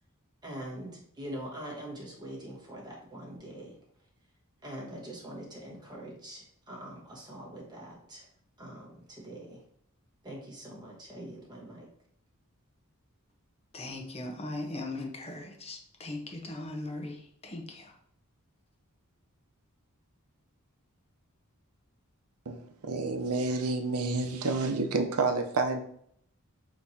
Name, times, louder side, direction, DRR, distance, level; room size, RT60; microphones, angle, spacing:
voice 1, 0.4-3.8 4.6-8.3 8.6-9.6 10.2-11.9, right 1 dB, 20° right, 1.2 m, -43 dB
voice 2, 13.7-18.0, left 2 dB, 25° left, 0.7 m, -39 dB
voice 3, 22.5-25.8, right 3 dB, 85° right, 0.7 m, -29 dB
6.3 x 3.0 x 2.7 m
head